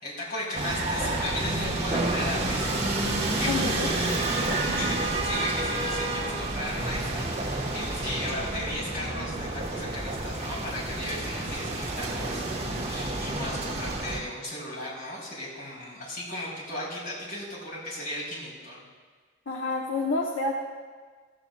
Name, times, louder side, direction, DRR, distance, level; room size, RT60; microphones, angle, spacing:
voice 1, 0.0-2.7 3.2-18.9, left 1 dB, 50° left, -5 dB, 4.1 m, -36 dB
sound 1, 0.5-14.2, right 2 dB, 30° right, 1.3 m, -29 dB
voice 2, 3.5-3.9 19.5-20.5, left 3 dB, 85° left, -1 dB, 1.0 m, -28 dB
15.0 x 14.5 x 2.4 m, 1.5 s
head